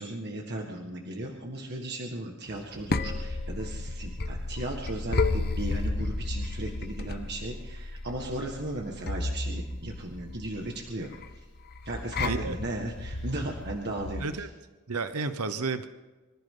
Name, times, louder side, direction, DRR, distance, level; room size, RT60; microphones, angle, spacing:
voice 1, 0.0-11.4 11.8-14.5, right 1 dB, 50° right, 1 dB, 1.8 m, -36 dB
sound 1, 2.5-14.4, left 2 dB, 50° left, 1.0 m, -33 dB
voice 2, 12.2-12.6 14.2-14.5 14.9-15.9, right 4 dB, 85° right, 11 dB, 0.9 m, -31 dB
25.5 x 14.5 x 3.9 m, 1.2 s
head